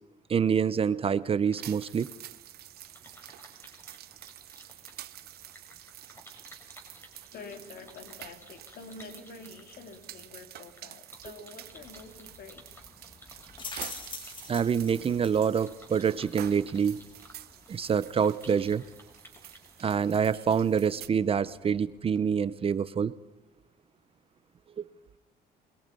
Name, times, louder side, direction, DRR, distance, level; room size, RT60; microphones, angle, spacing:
voice 1, 0.3-2.1 14.5-17.0 17.7-18.8 19.8-23.2 24.8-24.9, right 7 dB, 35° right, 16 dB, 0.7 m, -26 dB
sound 1, 1.4-20.2, equal, 15° left, 5.8 m, -56 dB
sound 2, 1.6-21.1, right 13 dB, 65° right, 1.1 m, -48 dB
voice 2, 7.3-12.6, left 4 dB, 60° left, 6 dB, 3.4 m, -47 dB
sound 3, 11.6-22.2, left 3 dB, 30° left, 2.5 m, -48 dB
28.0 x 21.5 x 5.5 m, 0.94 s
cardioid pair, 110°, 17 cm